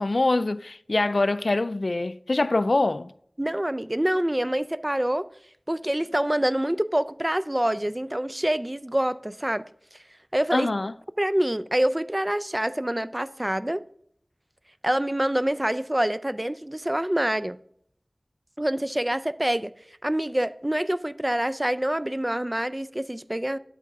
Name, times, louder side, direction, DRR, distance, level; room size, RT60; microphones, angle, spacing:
voice 1, 0.0-3.1 10.5-10.9, left 2 dB, 85° left, 0.3 m, -24 dB
voice 2, 3.4-5.3 5.7-9.6 10.3-10.7 11.2-13.8 14.8-17.6 18.6-19.7 20.0-23.6, right 1 dB, 25° right, 0.4 m, -26 dB
11.0 x 8.3 x 3.6 m
wide cardioid pair, 45°, 0 cm